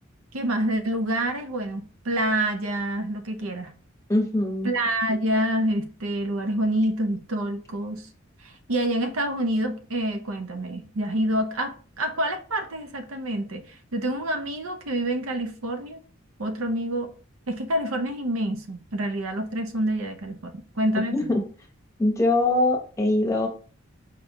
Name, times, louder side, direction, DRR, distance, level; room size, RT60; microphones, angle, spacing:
voice 1, 0.3-3.7 4.6-8.1 8.4-16.0 16.4-17.1 17.5-21.3, right 1 dB, 85° right, 0.7 m, -27 dB
voice 2, 4.1-4.7 21.1-21.5 22.0-23.5, left 2 dB, 15° left, 0.8 m, -22 dB
4.9 x 2.3 x 4.3 m
head